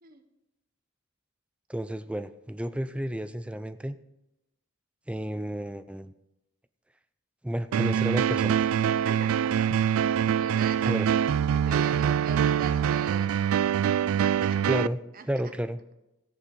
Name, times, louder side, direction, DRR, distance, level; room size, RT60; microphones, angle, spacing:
voice 1, 1.7-4.0 5.1-6.1 7.4-8.6 10.8-11.1 14.7-15.0 15.3-15.8, equal, 5° right, 12 dB, 0.4 m, -31 dB
sound 1, 7.7-14.9, right 8 dB, 75° right, 0.3 m, -24 dB
voice 2, 9.0-11.0 11.5-14.7 15.1-15.5, right 4 dB, 45° right, 7 dB, 1.1 m, -43 dB
18.0 x 7.0 x 3.9 m, 0.93 s
head